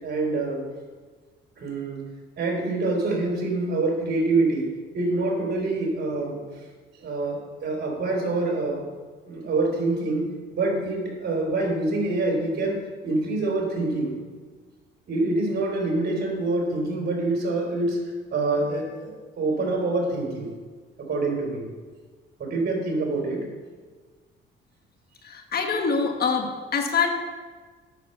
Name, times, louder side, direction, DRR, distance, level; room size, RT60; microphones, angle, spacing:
voice 1, 0.0-0.6 1.6-2.0 2.4-6.4 7.0-8.8 9.3-14.2 15.1-18.0 18.3-20.5 21.0-21.7 22.4-23.5, right 2 dB, 50° right, 0 dB, 3.5 m, -26 dB
voice 2, 25.2-27.1, left 5 dB, 50° left, 4 dB, 1.5 m, -25 dB
9.1 x 6.5 x 7.0 m, 1.4 s
cardioid pair, 95°, 21 cm